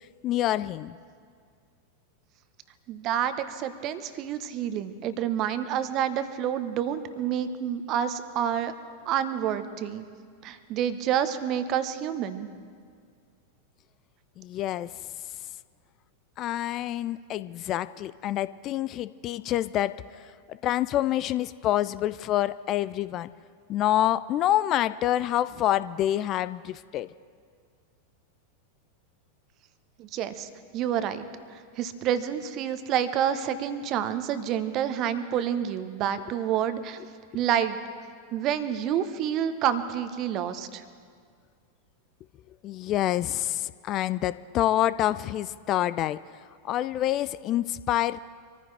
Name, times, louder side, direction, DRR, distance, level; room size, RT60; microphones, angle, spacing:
voice 1, 0.2-1.0 14.4-14.9 16.4-20.0 20.5-23.3 23.7-27.1 42.6-46.2 46.6-48.2, left 13 dB, 35° left, 16 dB, 0.4 m, -27 dB
voice 2, 2.9-8.7 9.0-10.1 10.4-12.5 30.0-37.0 37.3-37.8 38.3-40.8, right 9 dB, 35° right, 11 dB, 1.1 m, -28 dB
25.5 x 15.0 x 3.4 m, 2.1 s
figure-of-eight pair, 90°, 0 cm